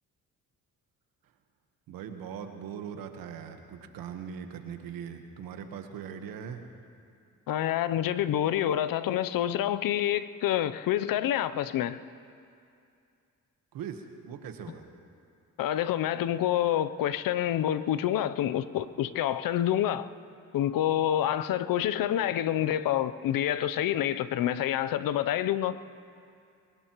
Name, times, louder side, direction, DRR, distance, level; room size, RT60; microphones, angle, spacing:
voice 1, 1.9-6.6 13.7-14.9, right 7 dB, 85° right, 1.2 m, -40 dB
voice 2, 7.5-12.0 15.6-20.1 20.5-25.8, left 11 dB, 75° left, 0.6 m, -27 dB
23.0 x 19.5 x 3.0 m
supercardioid pair, 55°, 34 cm